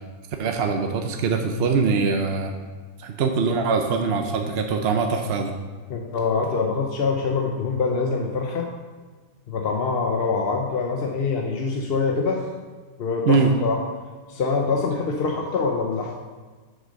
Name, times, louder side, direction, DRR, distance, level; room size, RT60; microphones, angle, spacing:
voice 1, 0.4-2.5 3.0-5.5 13.3-13.5, right 5 dB, 55° right, 4 dB, 0.7 m, -22 dB
voice 2, 5.9-8.7 9.5-12.4 13.0-13.8 14.3-16.1, left 4 dB, 50° left, 1 dB, 0.7 m, -24 dB
7.4 x 6.4 x 5.3 m, 1.4 s
omnidirectional pair, 1.7 m